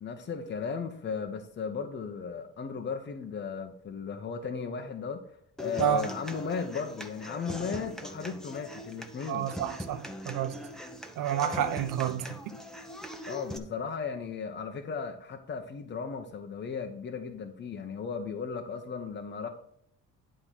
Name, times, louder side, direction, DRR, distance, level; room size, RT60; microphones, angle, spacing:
voice 1, 0.0-5.2 5.6-9.5 13.3-19.5, left 5 dB, 35° left, 0.9 m, -36 dB
Human voice / Acoustic guitar, 5.6-13.6, equal, ahead, 0.9 m, -41 dB
voice 2, 9.3-10.5 11.2-12.5, right 10 dB, 80° right, 0.9 m, -29 dB
10.0 x 3.8 x 7.3 m
cardioid pair, 150°, 32 cm